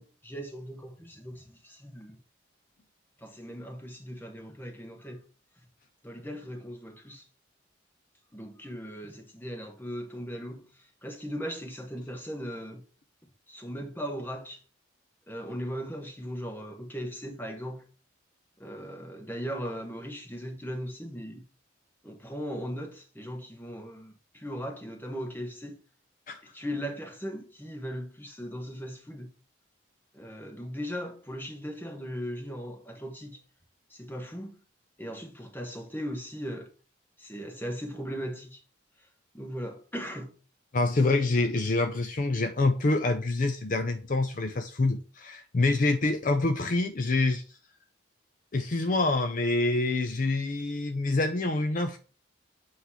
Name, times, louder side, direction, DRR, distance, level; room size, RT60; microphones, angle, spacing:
voice 1, 0.0-2.2 3.2-5.2 6.0-7.2 8.3-12.8 13.5-14.6 15.3-17.9 18.6-21.4 22.0-25.8 26.5-29.3 30.1-33.4 33.9-34.6 35.0-36.7 37.2-38.6 39.3-40.3, equal, 10° left, 1.2 m, -38 dB
voice 2, 40.7-47.4 48.5-52.0, left 2 dB, 45° left, 0.5 m, -26 dB
8.0 x 3.2 x 5.6 m
head